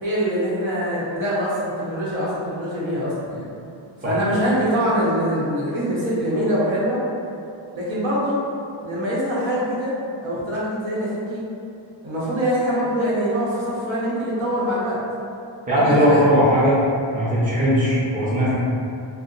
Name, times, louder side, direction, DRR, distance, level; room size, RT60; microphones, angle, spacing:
voice 1, 0.0-3.5 4.0-7.0 7.7-8.4 8.8-9.9 10.2-11.4 12.0-15.0 15.7-16.2, equal, 65° right, -7 dB, 1.0 m, -24 dB
voice 2, 15.7-16.8 17.1-18.6, equal, 15° right, -9 dB, 0.7 m, -18 dB
2.7 x 2.1 x 3.8 m, 2.7 s
wide cardioid pair, 135°, 49 cm